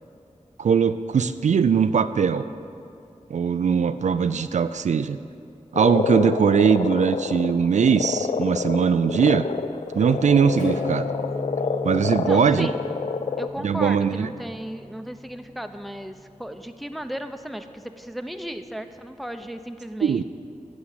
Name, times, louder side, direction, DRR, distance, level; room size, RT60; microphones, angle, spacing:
voice 1, 0.6-2.5 3.3-5.2 5.7-9.5 10.0-11.1 11.8-12.7 13.6-14.3 20.0-20.2, right 6 dB, 70° right, 12 dB, 0.4 m, -20 dB
Frog, 5.7-13.5, left 5 dB, 65° left, 0.5 m, -28 dB
Acoustic guitar / Strum, 10.6-16.1, left 2 dB, 85° left, 1.9 m, -37 dB
voice 2, 12.3-12.7 13.4-20.2, equal, ahead, 7 dB, 0.7 m, -35 dB
9.6 x 7.1 x 8.0 m, 2.6 s
cardioid pair, 45°, 13 cm